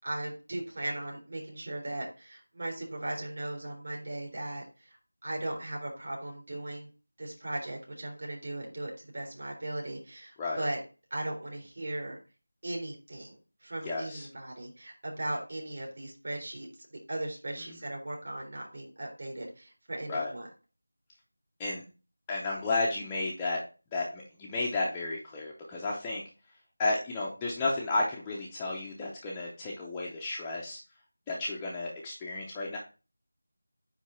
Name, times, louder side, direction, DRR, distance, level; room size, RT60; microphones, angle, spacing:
voice 1, 0.0-6.9 7.2-10.8 11.1-12.2 12.6-16.7 17.1-20.5, right 1 dB, 40° right, -1 dB, 3.6 m, -38 dB
voice 2, 13.8-14.3 17.6-17.8 20.1-20.3 21.6-21.8 22.3-23.6 23.9-26.2 26.8-30.8 31.3-32.8, left 2 dB, 10° left, -4 dB, 0.6 m, -32 dB
9.5 x 3.2 x 4.3 m, 0.32 s
figure-of-eight pair, 175°, 0 cm